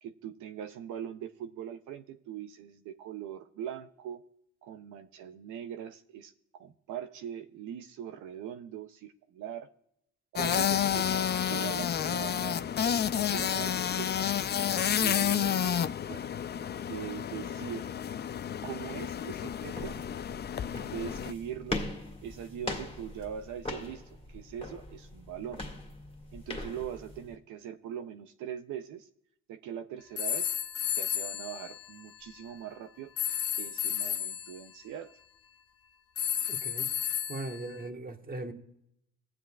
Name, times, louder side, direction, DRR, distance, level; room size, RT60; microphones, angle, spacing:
voice 1, 0.0-4.2 4.6-9.7 10.3-12.7 13.1-14.3 14.9-16.3 16.9-17.9 18.6-20.0 20.9-21.8 22.2-24.0 24.3-25.6 26.3-29.1 29.5-30.5 31.0-33.1 33.5-35.2, right 9 dB, 85° right, 0.6 m, -41 dB
sound 1, 10.4-21.3, left 9 dB, 35° left, 0.4 m, -30 dB
sound 2, 19.5-27.3, left 2 dB, 20° left, 2.0 m, -41 dB
sound 3, 30.2-32.4 33.2-34.6 36.2-37.9, left 9 dB, 50° left, 0.7 m, -33 dB
voice 2, 36.5-36.9 37.3-38.5, right 2 dB, 30° right, 1.4 m, -39 dB
18.5 x 7.7 x 2.3 m
cardioid pair, 90°, 30 cm